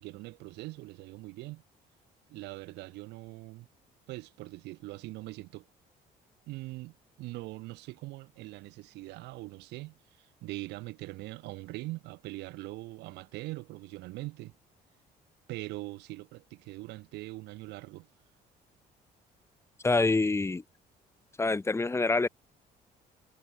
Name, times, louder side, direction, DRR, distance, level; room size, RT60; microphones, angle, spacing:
voice 1, 0.0-1.6 2.3-3.7 4.1-5.7 6.5-14.5 15.5-18.1, right 20 dB, 90° right, 1.9 m, -42 dB
voice 2, 19.8-20.6 21.4-22.3, left 3 dB, 15° left, 1.6 m, -26 dB
cardioid pair, 110°, 17 cm